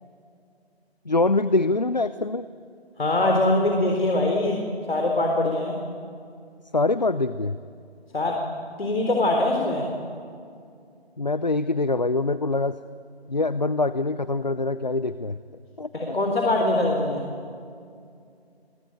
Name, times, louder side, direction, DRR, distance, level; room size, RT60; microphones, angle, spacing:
voice 1, 1.1-2.4 6.7-7.6 11.2-12.8 13.3-15.4 15.8-16.2, left 3 dB, 40° left, 14 dB, 0.6 m, -24 dB
voice 2, 3.0-4.6 4.9-5.7 8.1-8.4 8.8-9.9 15.9-17.2, left 2 dB, 60° left, 1 dB, 3.8 m, -22 dB
26.5 x 23.5 x 8.9 m, 2.4 s
figure-of-eight pair, 175°, 32 cm